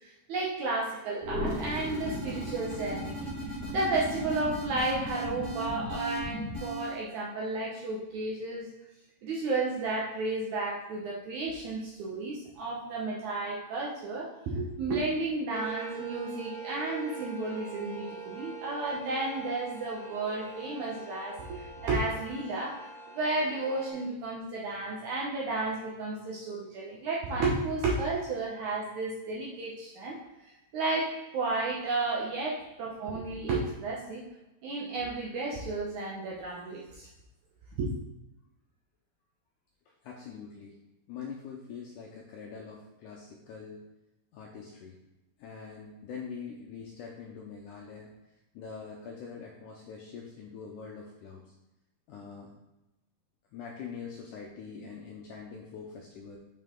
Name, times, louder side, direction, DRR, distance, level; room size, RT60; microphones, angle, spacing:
voice 1, 0.0-3.3 3.7-8.7 9.2-30.2 30.7-34.2 34.6-37.1 37.8-37.9, right 2 dB, 75° right, -4 dB, 1.8 m, -32 dB
sound 1, 1.2-7.0, equal, 40° right, 3.0 m, -36 dB
sound 2, 15.5-23.9, right 5 dB, ahead, 0.8 m, -43 dB
voice 2, 39.9-40.8 41.1-43.8 44.3-45.0 45.4-48.1 48.5-51.4 52.1-52.5 53.5-56.4, left 6 dB, 80° left, -1 dB, 1.8 m, -44 dB
6.8 x 5.5 x 3.7 m, 0.97 s
omnidirectional pair, 4.6 m